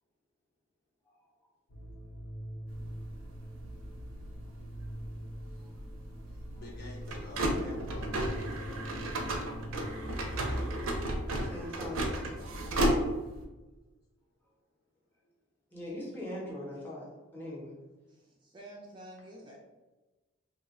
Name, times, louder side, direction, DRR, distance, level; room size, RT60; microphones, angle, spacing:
sound 1, 1.7-10.5, right 1 dB, 80° left, 0.8 m, -45 dB
sound 2, 2.7-13.4, right 1 dB, 80° right, 0.5 m, -34 dB
voice 1, 6.3-8.6 10.4-11.0 11.7-12.9 15.2-15.3, left 2 dB, 45° left, -2 dB, 0.7 m, -50 dB
voice 2, 11.4-12.1 15.7-17.1 17.3-17.7, left 1 dB, 10° left, -5 dB, 0.7 m, -40 dB
voice 3, 18.1-19.6, right 1 dB, 20° right, -2 dB, 0.4 m, -49 dB
2.7 x 2.1 x 3.6 m, 1.1 s
head